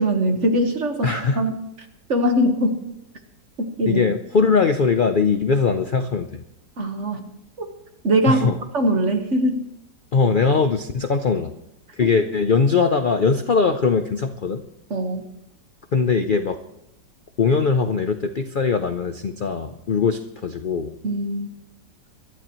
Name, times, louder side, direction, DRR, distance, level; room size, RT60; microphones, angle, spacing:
voice 1, 0.0-1.6 2.1-2.8 3.6-4.1 6.8-7.2 7.6-7.7 8.0-8.5 8.7-9.6 14.9-15.3 21.0-21.5, right 1 dB, 45° right, 5 dB, 1.6 m, -21 dB
voice 2, 1.0-1.4 3.8-6.4 8.2-8.6 10.1-11.5 11.9-14.6 15.9-16.6 17.4-20.9, left 5 dB, 75° left, 8 dB, 0.4 m, -21 dB
23.0 x 13.0 x 3.1 m, 0.83 s
omnidirectional pair, 1.9 m